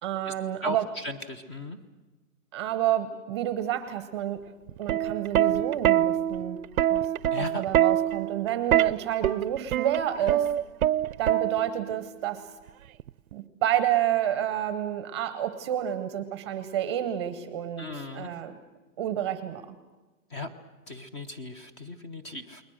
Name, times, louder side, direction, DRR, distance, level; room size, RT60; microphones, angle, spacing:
voice 1, 0.0-0.9 2.5-4.4 4.8-6.6 6.9-7.1 7.4-10.5 11.2-12.4 13.3-18.6 19.0-19.8, right 11 dB, 20° right, 12 dB, 0.8 m, -29 dB
voice 2, 0.6-1.8 7.3-7.6 17.8-18.3 20.3-20.5 20.9-22.6, left 2 dB, 20° left, 9 dB, 0.9 m, -37 dB
Plucked string instrument, 4.7-11.9 13.0-13.3, right 12 dB, 75° right, 0.7 m, -25 dB
29.5 x 21.5 x 6.4 m, 1.2 s
hypercardioid pair, 170°, 42 cm